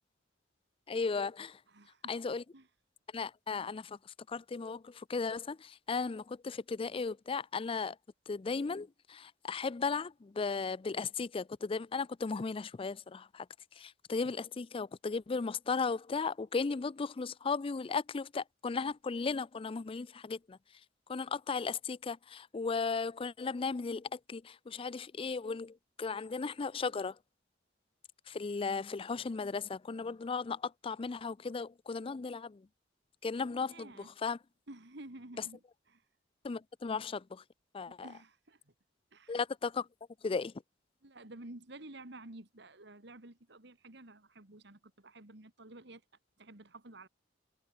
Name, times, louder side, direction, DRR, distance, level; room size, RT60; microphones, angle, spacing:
voice 1, 0.9-1.6 2.1-2.4 3.1-8.0 8.3-13.5 13.7-20.6 21.1-27.2 28.3-32.7 33.2-34.4 36.4-37.4 37.7-38.1 39.3-39.9 40.2-40.5, left 4 dB, 30° left, 0.4 m, -36 dB
voice 2, 1.7-2.7 33.5-34.1 34.7-35.6 35.9-36.0 37.9-38.7 39.1-39.4 41.0-46.0 46.4-47.1, right 2 dB, 65° right, 2.6 m, -52 dB
head